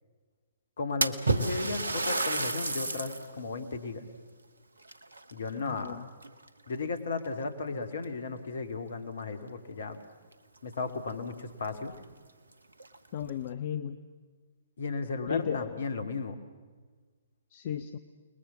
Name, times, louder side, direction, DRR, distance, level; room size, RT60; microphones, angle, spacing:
voice 1, 0.8-4.1 5.3-6.0 6.7-10.0 10.6-11.9 14.8-16.4, left 4 dB, 60° left, 10 dB, 2.5 m, -35 dB
Splash splatter, 1.0-3.3 3.8-3.9 4.8-5.9 6.2-6.7 7.5-7.6 8.0-8.1 10.3-10.4 10.7-10.8 11.4-11.5 11.9-12.0 12.7-13.3, right 2 dB, 75° right, 1.4 m, -31 dB
voice 2, 5.6-6.1 13.1-14.0 15.3-15.8 17.5-18.0, left 8 dB, 45° left, 11 dB, 1.0 m, -34 dB
29.5 x 20.5 x 7.3 m, 1.5 s
figure-of-eight pair, 125°, 0 cm